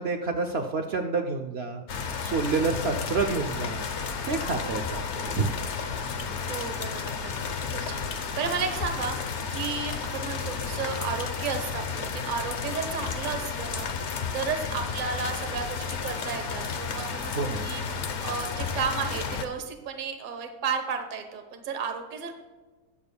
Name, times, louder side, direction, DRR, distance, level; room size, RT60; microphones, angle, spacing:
voice 1, 0.0-1.8 2.2-3.8 4.3-5.5 17.3-17.6, right 4 dB, 75° right, 4 dB, 0.5 m, -28 dB
sound 1, 1.9-19.5, left 5 dB, 55° left, 0.8 m, -32 dB
voice 2, 6.5-9.2 9.5-22.3, right 5 dB, 35° right, 6 dB, 0.9 m, -33 dB
20.5 x 6.8 x 2.3 m, 1.3 s
omnidirectional pair, 1.9 m